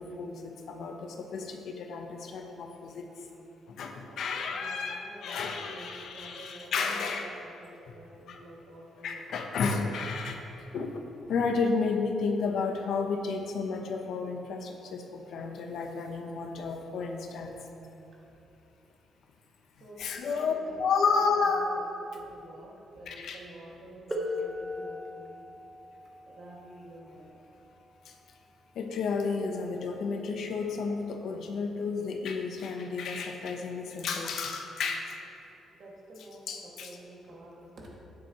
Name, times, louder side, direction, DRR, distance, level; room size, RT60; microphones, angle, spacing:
voice 1, 0.0-3.1 3.7-7.3 8.3-8.4 9.0-10.4 10.7-11.0 11.3-17.6 20.0-20.5 20.8-21.7 23.1-23.4 28.1-28.2 28.7-35.1 36.5-36.9, left 4 dB, 65° left, 3 dB, 0.9 m, -32 dB
voice 2, 4.1-10.0 17.4-17.5 18.1-18.3 19.8-20.8 21.1-25.5 26.2-27.5 35.7-38.0, right 1 dB, 45° right, -3 dB, 2.0 m, -50 dB
sound 1, 24.1-29.5 30.6-30.7 31.5-31.7, left 2 dB, 5° right, 0.9 m, -40 dB
12.0 x 10.0 x 3.0 m, 2.8 s
cardioid pair, 155°, 0 cm